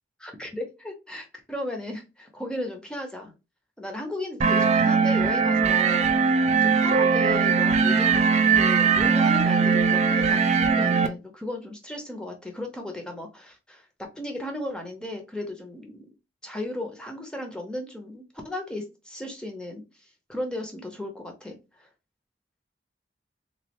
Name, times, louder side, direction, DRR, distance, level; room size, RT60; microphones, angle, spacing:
voice 1, 0.2-3.3 3.8-6.2 6.6-16.1 16.4-19.8 20.3-21.9, left 1 dB, 5° left, 2 dB, 0.6 m, -35 dB
sound 1, 4.4-11.1, right 5 dB, 40° right, 0.3 m, -20 dB
3.1 x 2.3 x 2.9 m, 0.28 s
head